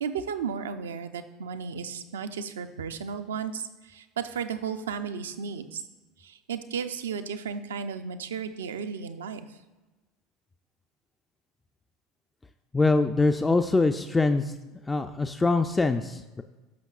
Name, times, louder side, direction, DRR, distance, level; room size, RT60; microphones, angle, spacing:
voice 1, 0.0-5.8 6.2-9.6, right 6 dB, 80° right, 9 dB, 0.5 m, -34 dB
voice 2, 12.7-14.5 14.9-16.4, left 3 dB, 15° left, 7 dB, 0.4 m, -23 dB
14.5 x 5.7 x 2.4 m, 1.1 s
hypercardioid pair, 75°, 0 cm